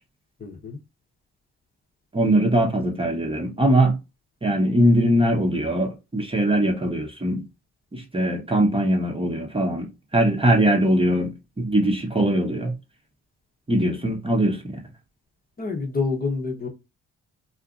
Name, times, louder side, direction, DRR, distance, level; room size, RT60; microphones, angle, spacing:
voice 1, 0.4-0.8 15.6-16.7, left 4 dB, 25° left, 0.9 m, -27 dB
voice 2, 2.1-4.0 4.4-7.4 7.9-9.9 10.1-12.7 13.7-14.8, right 1 dB, 15° right, 0.8 m, -21 dB
2.7 x 2.5 x 2.4 m
supercardioid pair, 70°, 33 cm